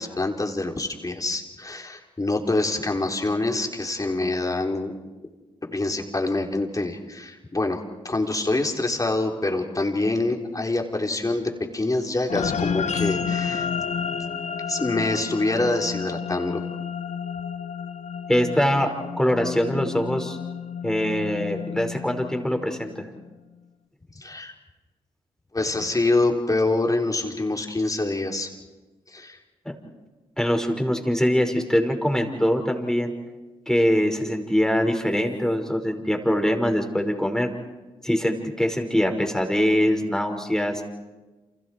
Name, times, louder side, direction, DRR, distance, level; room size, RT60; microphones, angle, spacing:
voice 1, 0.0-4.9 5.7-7.8 8.0-13.7 14.7-16.6 24.2-24.5 25.5-28.5 29.1-29.4, left 2 dB, 25° left, 1 dB, 4.3 m, -25 dB
sound 1, 12.3-22.9, left 7 dB, 60° left, 1.3 m, -31 dB
voice 2, 18.3-20.4 20.8-23.1 29.7-29.8 30.4-33.1 33.7-37.5 38.0-40.8, equal, 5° left, 4 dB, 5.6 m, -23 dB
29.5 x 28.0 x 4.7 m, 1.2 s
hypercardioid pair, 40°, 13 cm